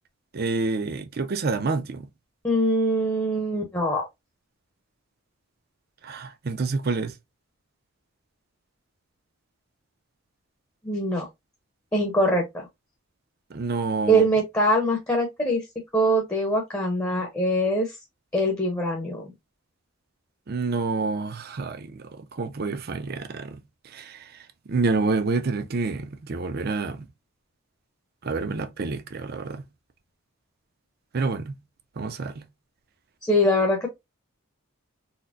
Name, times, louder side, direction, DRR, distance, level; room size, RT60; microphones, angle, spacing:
voice 1, 0.3-2.1 6.0-7.2 13.5-14.3 20.5-27.1 28.2-29.7 31.1-31.6 32.0-32.5, right 3 dB, 45° right, 0.5 m, -28 dB
voice 2, 2.4-4.1 10.8-11.3 11.9-12.7 14.1-15.6 15.9-18.0 18.3-19.3 33.2-33.9, equal, 15° left, 0.7 m, -23 dB
4.1 x 2.1 x 2.5 m
head